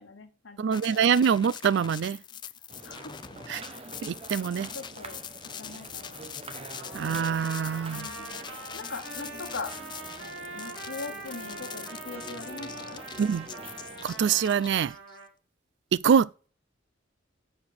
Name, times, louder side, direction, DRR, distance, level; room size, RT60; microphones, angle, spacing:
voice 1, 0.0-1.2 1.5-1.6 2.3-2.4 2.8-3.2 4.6-5.2 5.6-7.1 7.9-9.7 10.5-13.0, left 4 dB, 75° left, 1.1 m, -42 dB
voice 2, 0.6-2.2 3.5-3.6 4.0-4.7 6.9-8.1 13.2-13.5 14.0-15.0 15.9-16.5, right 7 dB, 65° right, 0.3 m, -25 dB
sound 1, 0.7-15.2, left 9 dB, 25° left, 0.3 m, -43 dB
sound 2, 2.7-14.4, right 3 dB, 30° right, 0.8 m, -46 dB
Trumpet, 6.8-15.3, right 2 dB, 85° right, 2.2 m, -43 dB
6.7 x 5.1 x 6.2 m
head